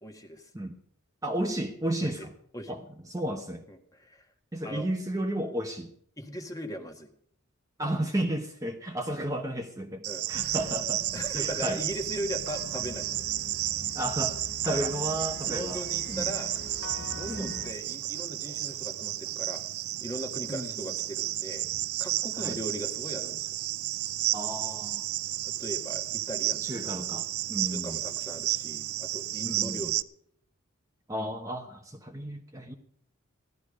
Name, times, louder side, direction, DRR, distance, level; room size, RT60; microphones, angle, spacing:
voice 1, 0.0-0.5 2.0-2.3 2.5-2.8 3.7-4.3 4.6-4.9 6.2-7.1 10.1-10.6 11.1-13.3 14.7-14.9 15.4-16.5 17.1-19.6 20.0-21.6 22.0-23.5 25.4-26.6 27.7-30.0, equal, 15° left, 5 dB, 1.5 m, -38 dB
voice 2, 1.2-2.3 2.7-3.6 4.5-5.9 7.8-11.0 11.3-11.8 13.9-14.4 14.6-16.3 17.3-17.5 20.5-20.7 22.4-22.6 24.3-25.1 26.6-28.0 29.4-29.9 31.1-32.7, right 1 dB, 15° right, 3 dB, 1.0 m, -33 dB
Cricket, 10.0-30.0, right 15 dB, 80° right, 0.5 m, -32 dB
sound 1, 10.3-17.7, left 3 dB, 55° left, 0.8 m, -44 dB
16.5 x 12.5 x 4.9 m, 0.65 s
head